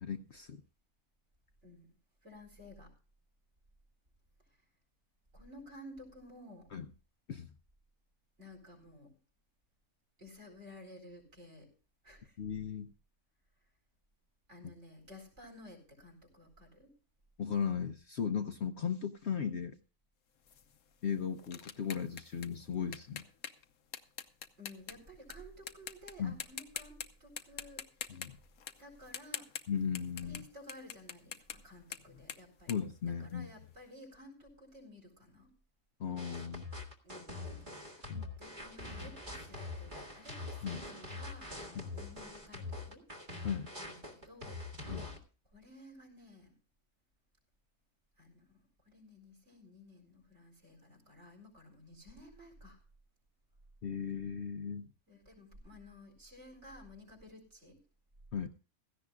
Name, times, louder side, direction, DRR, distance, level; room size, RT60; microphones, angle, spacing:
voice 1, 0.0-0.6 6.7-6.9 7.3-7.5 12.4-12.9 17.4-19.8 21.0-23.3 26.2-26.3 28.1-28.4 29.7-30.4 32.7-33.5 36.0-36.7 38.1-38.3 40.6-40.8 41.7-41.9 43.4-43.7 44.9-45.1 53.8-54.9 58.3-58.5, left 7 dB, 55° left, 6 dB, 0.9 m, -36 dB
voice 2, 1.6-1.9 2.2-2.9 5.3-6.7 8.4-9.2 10.2-11.7 12.0-12.4 14.5-16.9 24.6-27.9 28.8-29.5 30.2-35.5 37.0-38.1 38.4-43.1 43.8-44.6 45.5-46.5 48.2-48.6 48.8-52.8 55.1-57.8, left 1 dB, 50° right, 3 dB, 4.8 m, -54 dB
sound 1, 20.5-25.3 25.7-26.1 26.4-27.1 27.4-33.7, left 8 dB, 75° left, 1.3 m, -45 dB
sound 2, 36.2-45.2, left 2 dB, 35° right, 2.0 m, -44 dB
16.5 x 14.5 x 2.4 m, 0.35 s
omnidirectional pair, 1.5 m